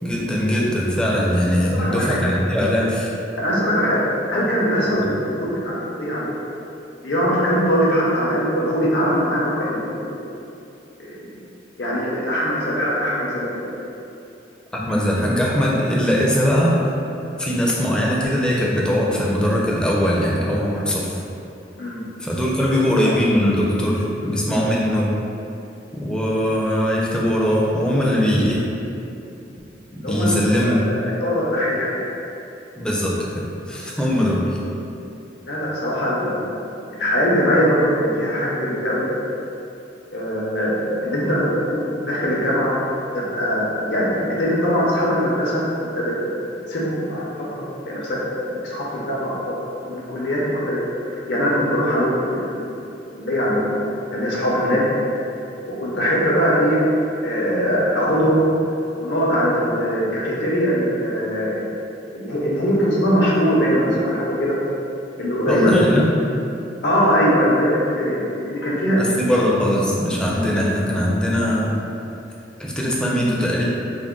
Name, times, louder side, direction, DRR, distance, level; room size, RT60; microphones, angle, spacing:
voice 1, 0.0-3.1 14.7-16.9 17.4-21.2 22.2-25.1 25.9-28.7 29.9-30.8 32.8-34.6 65.5-66.1 69.0-71.7 72.6-73.6, equal, 5° left, -4 dB, 0.4 m, -20 dB
voice 2, 1.7-2.2 3.4-4.0 4.3-5.1 5.4-6.3 7.0-10.2 11.0-11.3 11.8-13.8 21.8-22.0 22.8-23.1 30.0-30.3 30.6-32.0 35.4-36.6 36.9-39.1 40.1-42.7 43.1-46.4 46.7-48.2 48.4-49.3 49.8-50.8 51.3-52.7 53.1-53.8 54.1-54.8 55.7-56.8 57.2-58.5 58.9-61.6 62.1-64.6 65.2-65.7 66.8-69.0, equal, 75° left, -5 dB, 0.7 m, -21 dB
3.5 x 2.1 x 3.6 m, 2.8 s
head